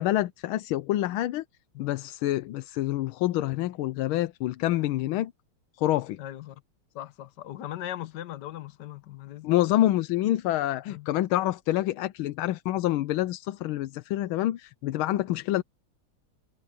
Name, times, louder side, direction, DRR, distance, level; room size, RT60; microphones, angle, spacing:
voice 1, 0.0-1.4 1.8-5.3 5.8-6.2 9.4-15.6, left 15 dB, 90° left, 1.5 m, -27 dB
voice 2, 6.2-6.6 6.9-9.5 10.9-11.1, left 13 dB, 60° left, 1.5 m, -39 dB
omnidirectional pair, 2.2 m